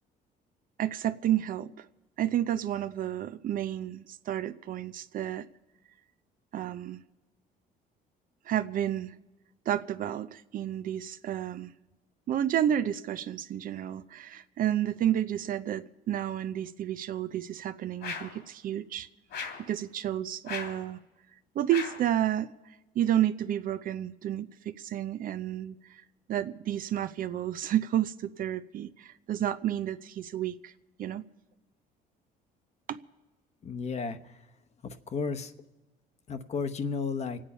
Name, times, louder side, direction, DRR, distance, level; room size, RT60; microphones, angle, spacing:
voice 1, 0.8-1.9 2.2-5.4 6.5-7.0 8.5-9.1 9.7-11.7 12.3-19.1 19.6-21.0 21.5-22.5 22.9-24.5 24.8-25.7 26.3-30.7 31.0-31.2 32.9-33.0, right 11 dB, 55° right, 0.6 m, -31 dB
sound 1, 18.0-18.4 19.3-19.7 20.5-20.8 21.7-22.1, left 5 dB, 75° left, 2.5 m, -38 dB
voice 2, 33.6-34.3 34.8-35.5 36.3-37.4, left 5 dB, 40° left, 1.0 m, -33 dB
26.0 x 8.8 x 5.5 m
cardioid pair, 110°, 17 cm